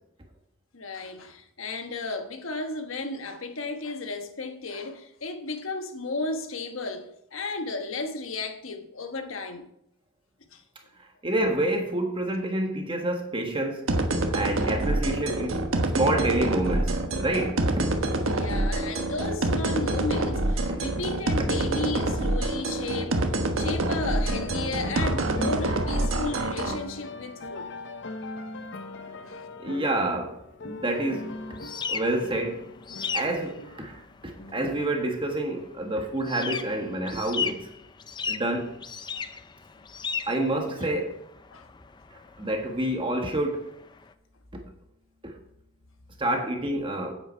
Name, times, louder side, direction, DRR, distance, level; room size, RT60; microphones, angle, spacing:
voice 1, 0.7-9.7 10.5-10.6 16.8-16.9 18.3-23.2 23.6-27.7 29.3-29.5 39.1-39.3 40.8-40.9 41.5-41.7, left 3 dB, 85° left, 1.2 m, -34 dB
voice 2, 11.2-13.9 14.3-15.6 15.9-18.3 20.7-20.8 28.9-29.3 29.6-31.4 31.9-32.6 33.1-37.6 38.3-38.7 40.3-41.1 42.4-43.6 45.2-45.3 46.2-47.1, right 1 dB, 25° right, 1.5 m, -28 dB
sound 1, 13.9-26.8, right 1 dB, 90° right, 1.2 m, -26 dB
sound 2, 24.2-35.5, left 2 dB, 60° left, 0.7 m, -40 dB
sound 3, 30.9-44.1, left 6 dB, 20° left, 0.4 m, -37 dB
9.2 x 8.1 x 4.5 m
head